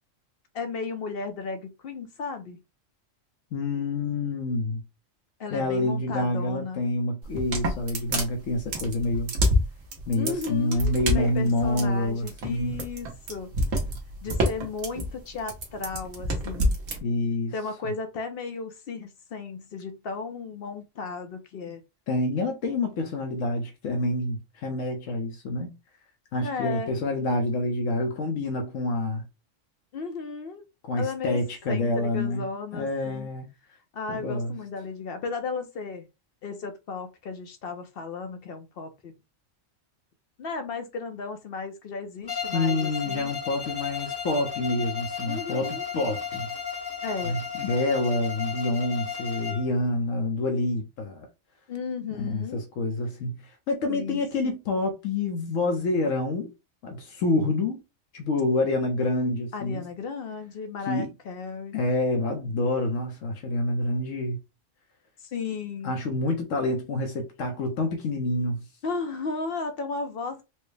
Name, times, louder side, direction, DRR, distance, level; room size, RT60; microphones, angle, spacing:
voice 1, 0.5-2.6 5.4-6.8 10.1-13.5 14.2-16.8 17.5-21.8 26.4-26.9 29.9-30.6 31.0-31.4 31.7-33.3 33.9-36.0 36.4-39.1 40.4-43.3 45.3-45.9 47.0-47.4 51.7-52.6 53.9-54.6 59.5-61.7 65.2-66.0 68.8-70.4, left 4 dB, 60° left, 0.7 m, -34 dB
voice 2, 3.5-4.8 5.5-9.3 10.1-12.7 17.0-17.5 22.1-25.7 26.3-29.2 30.8-32.4 32.7-33.5 34.1-34.5 42.5-46.5 47.2-51.3 52.1-56.5 56.8-57.8 58.1-59.8 60.8-61.1 61.7-64.4 65.8-68.6, left 2 dB, 75° left, 1.0 m, -27 dB
sound 1, 7.2-17.0, equal, 80° right, 1.4 m, -27 dB
Bowed string instrument, 42.3-49.7, left 6 dB, 35° left, 0.3 m, -34 dB
4.4 x 2.0 x 3.2 m
omnidirectional pair, 1.3 m